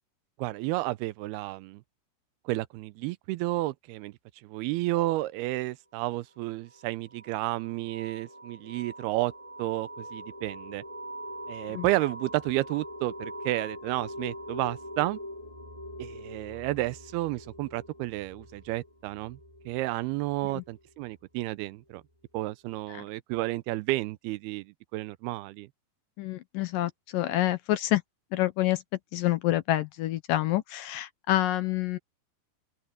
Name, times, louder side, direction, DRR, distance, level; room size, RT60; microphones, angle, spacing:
voice 1, 0.4-1.8 2.5-4.1 4.4-9.3 9.6-10.8 11.5-15.2 16.0-19.4 19.7-22.0 22.3-25.7, right 18 dB, 90° right, 2.6 m, -31 dB
sound 1, 6.7-21.1, equal, 10° right, 3.5 m, -43 dB
voice 2, 26.2-28.0 28.3-28.8 29.1-32.0, left 15 dB, 75° left, 2.3 m, -27 dB
open air
omnidirectional pair, 4.4 m